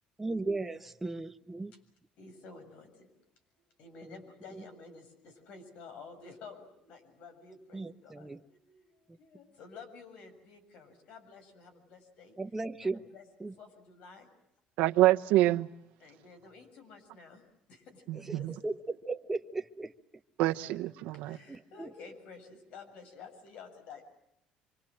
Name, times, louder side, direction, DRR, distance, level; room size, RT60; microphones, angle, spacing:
voice 1, 0.2-1.7 4.0-4.1 7.7-8.4 9.1-9.2 12.4-13.0 13.4-13.5 18.2-18.4 18.6-18.8 19.1-19.9 21.5-21.9, right 3 dB, 10° right, 0.9 m, -36 dB
voice 2, 2.2-3.1 3.8-8.8 9.2-12.4 13.1-13.3 13.6-14.3 16.0-17.4 17.7-18.5 20.7-20.8 21.2-24.0, left 4 dB, 60° left, 7.4 m, -51 dB
voice 3, 14.8-15.7 18.1-18.5 20.4-21.4, right 16 dB, 80° right, 1.0 m, -26 dB
27.0 x 25.0 x 7.7 m
cardioid pair, 155°, 3 cm